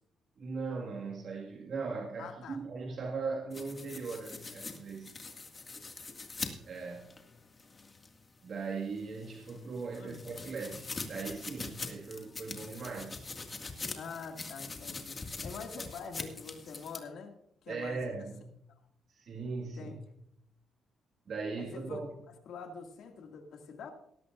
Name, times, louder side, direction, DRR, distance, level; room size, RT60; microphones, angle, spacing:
voice 1, 0.4-5.2 6.6-7.2 8.4-13.3 17.7-18.4 19.1-20.0 21.3-22.1, right 4 dB, 55° right, -1 dB, 1.9 m, -39 dB
voice 2, 2.2-2.6 10.0-10.2 14.0-17.3 17.6-18.1 19.6-20.0 21.6-22.0 22.5-23.9, left 5 dB, 70° left, 3 dB, 2.2 m, -45 dB
sound 1, 3.5-8.2 8.6-17.0, left 3 dB, 30° left, 2.0 m, -43 dB
18.0 x 13.5 x 2.5 m, 0.73 s
cardioid pair, 90°, 0 cm